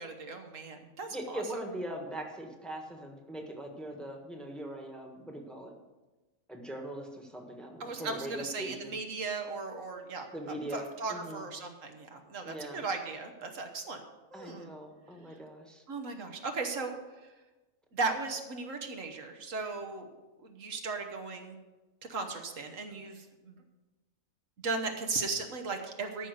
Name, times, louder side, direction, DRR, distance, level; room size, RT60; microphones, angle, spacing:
voice 1, 0.0-1.4 7.8-10.3 10.7-14.0 14.3-14.7 15.9-17.0 17.9-20.1 20.4-21.6 22.1-23.6 24.6-26.3, right 3 dB, 70° right, 4 dB, 1.6 m, -37 dB
voice 2, 1.1-5.7 6.5-9.0 10.3-11.4 12.4-12.8 14.3-15.8, right 1 dB, ahead, 2 dB, 1.3 m, -41 dB
13.5 x 5.5 x 6.6 m, 1.2 s
omnidirectional pair, 1.4 m